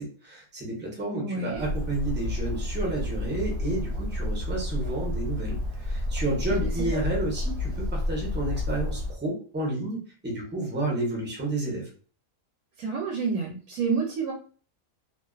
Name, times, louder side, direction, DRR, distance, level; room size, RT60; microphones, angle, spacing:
voice 1, 0.0-11.9, right 2 dB, 10° right, -2 dB, 0.5 m, -31 dB
voice 2, 1.1-1.6 6.5-7.0 12.8-14.3, right 5 dB, 85° right, -2 dB, 1.2 m, -29 dB
Bird, 1.5-9.1, left 1 dB, 60° right, 0.8 m, -30 dB
2.5 x 2.4 x 2.3 m, 0.40 s
omnidirectional pair, 1.5 m